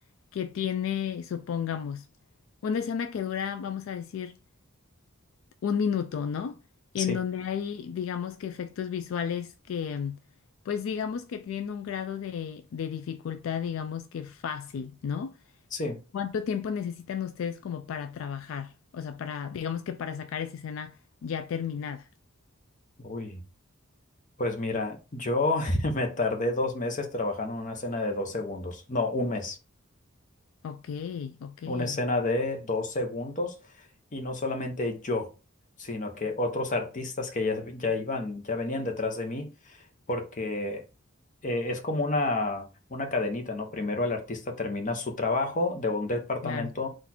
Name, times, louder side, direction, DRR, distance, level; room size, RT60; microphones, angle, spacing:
voice 1, 0.3-2.1 2.6-4.4 5.6-6.6 6.9-10.2 10.7-15.4 16.1-22.1 30.6-32.0 46.4-46.7, left 7 dB, 70° left, 0.3 m, -33 dB
voice 2, 23.0-23.4 24.4-29.6 31.7-33.9 34.1-35.3 35.8-39.8 40.1-40.8 41.4-46.9, left 2 dB, 40° left, 0.8 m, -30 dB
4.1 x 2.4 x 4.2 m
head